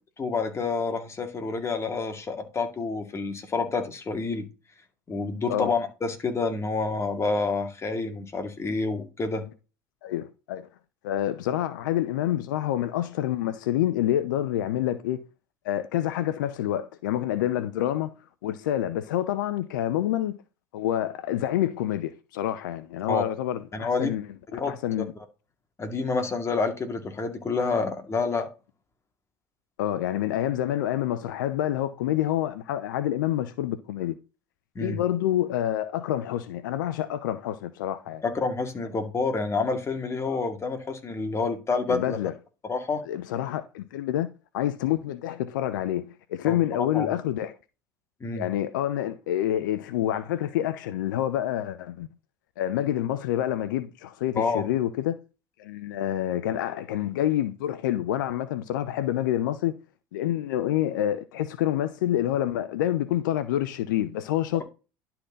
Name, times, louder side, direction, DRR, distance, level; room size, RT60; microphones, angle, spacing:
voice 1, 0.2-4.5 5.1-9.4 23.1-23.2 23.7-24.1 24.5-24.7 25.8-28.5 34.8-35.0 38.2-42.2 42.6-43.0 46.4-47.1 48.2-48.5 54.4-54.6, left 4 dB, 25° left, 2.3 m, -28 dB
voice 2, 10.0-10.7 11.0-15.2 15.6-18.1 18.4-20.4 20.7-24.3 24.7-25.1 29.8-34.2 34.8-38.2 40.3-40.4 41.9-42.3 43.1-44.3 44.5-47.6 48.3-52.1 52.6-55.2 55.6-59.8 60.1-64.6, left 12 dB, 80° left, 0.6 m, -27 dB
11.5 x 4.4 x 3.8 m
hypercardioid pair, 80°, 10 cm